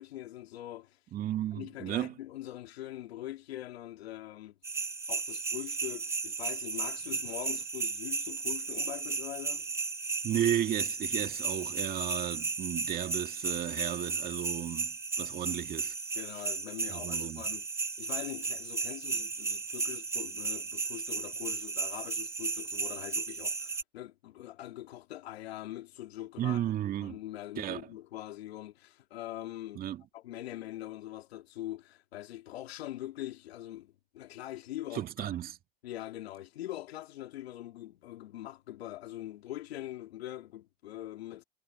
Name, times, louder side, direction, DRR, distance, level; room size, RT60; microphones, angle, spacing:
voice 1, 0.0-1.0 1.5-4.5 5.1-9.7 16.1-17.7 18.0-26.6 27.0-29.9 30.1-35.2 35.8-41.4, left 14 dB, 75° left, 2.7 m, -43 dB
voice 2, 1.1-2.1 10.2-15.9 16.9-17.4 26.4-27.2 27.6-27.8 29.8-30.0 34.9-35.6, right 11 dB, 30° right, 2.4 m, -34 dB
sound 1, 4.6-23.8, right 4 dB, 10° right, 0.9 m, -35 dB
hypercardioid pair, 130°, 31 cm